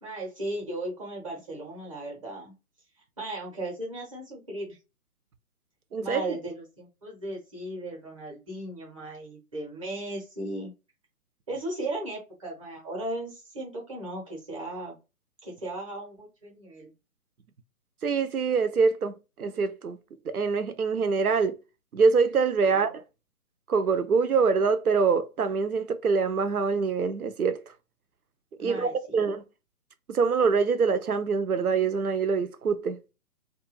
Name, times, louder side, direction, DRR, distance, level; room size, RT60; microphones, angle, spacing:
voice 1, 0.0-2.5 3.2-4.8 6.0-10.7 11.5-15.0 15.4-16.9 22.7-22.9 28.6-29.3, right 1 dB, 20° right, 0.8 m, -36 dB
voice 2, 5.9-6.4 18.0-20.0 20.2-21.6 21.9-23.0 23.7-27.6 28.6-29.4 30.1-33.0, right 5 dB, 75° right, 0.6 m, -25 dB
2.3 x 2.3 x 3.1 m
figure-of-eight pair, 135°, 44 cm